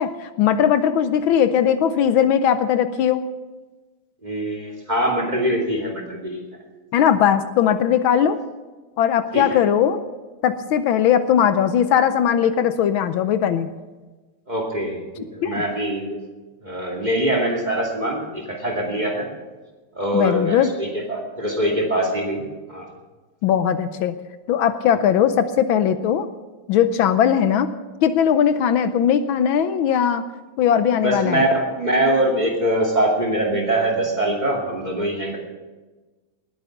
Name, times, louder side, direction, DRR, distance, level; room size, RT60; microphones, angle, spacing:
voice 1, 0.0-3.2 6.9-8.4 9.0-10.0 10.4-13.7 15.4-15.6 20.1-20.7 23.4-24.2 24.5-26.3 26.7-27.7 28.0-30.2 30.6-31.4, left 9 dB, 75° left, 11 dB, 1.5 m, -19 dB
voice 2, 4.2-6.4 9.3-9.6 14.5-16.2 16.6-19.3 19.9-22.9 31.0-35.4, right 1 dB, 20° right, 1 dB, 2.5 m, -23 dB
19.5 x 9.2 x 5.8 m, 1.2 s
omnidirectional pair, 2.3 m